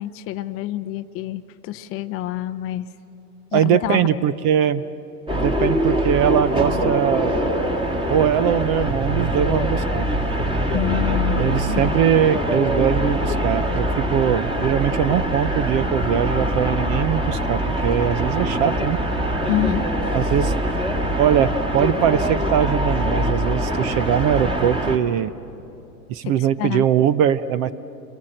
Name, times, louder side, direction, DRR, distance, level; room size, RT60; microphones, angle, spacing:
voice 1, 0.0-2.9 3.5-4.2 10.7-12.0 19.5-19.9 26.2-26.9, left 13 dB, 30° left, 10 dB, 0.6 m, -27 dB
voice 2, 3.5-4.8 5.3-7.4 8.1-10.1 11.4-13.9 14.1-19.0 20.1-20.5 21.2-25.3 26.1-27.7, right 9 dB, 30° right, 16 dB, 0.6 m, -21 dB
sound 1, 5.3-25.0, equal, 10° right, 1.9 m, -23 dB
29.5 x 22.5 x 7.8 m, 2.9 s
hypercardioid pair, 115°, 49 cm